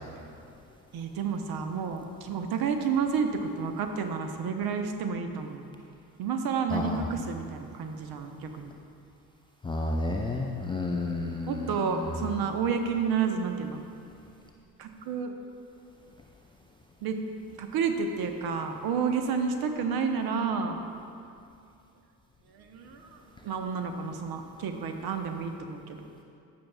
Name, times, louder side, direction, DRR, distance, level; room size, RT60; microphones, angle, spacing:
voice 1, 0.9-5.6 6.2-8.7 11.5-13.8 14.8-15.3 17.0-17.2 17.6-20.8 22.5-26.0, right 6 dB, 45° right, 6 dB, 0.9 m, -30 dB
voice 2, 9.6-11.9, left 2 dB, 10° left, -1 dB, 0.3 m, -31 dB
14.5 x 6.0 x 2.3 m, 2.5 s
figure-of-eight pair, 55°, 50 cm